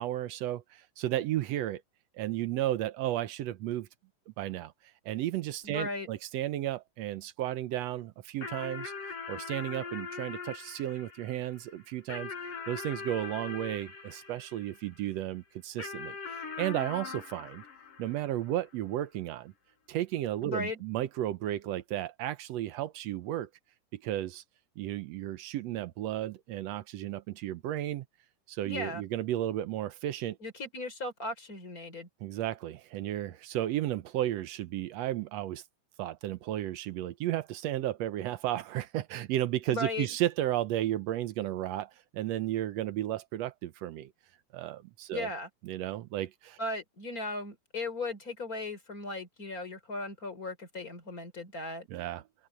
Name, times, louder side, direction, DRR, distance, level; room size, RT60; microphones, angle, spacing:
voice 1, 0.0-1.8 2.1-3.9 4.4-4.7 5.0-8.9 9.3-12.3 12.7-16.2 16.6-17.6 18.0-19.5 19.9-23.5 23.9-24.4 24.8-28.0 28.5-30.4 32.2-35.6 36.0-44.1 44.5-45.3 45.6-46.6 51.9-52.2, right 13 dB, 75° right, 1.6 m, -33 dB
voice 2, 5.6-6.1 20.4-20.8 28.7-29.0 30.4-32.1 39.7-40.1 45.1-45.5 46.6-51.9, left 2 dB, 25° left, 4.0 m, -37 dB
sound 1, 8.4-15.1 15.8-18.6, left 5 dB, 80° left, 7.7 m, -42 dB
open air
omnidirectional pair, 3.7 m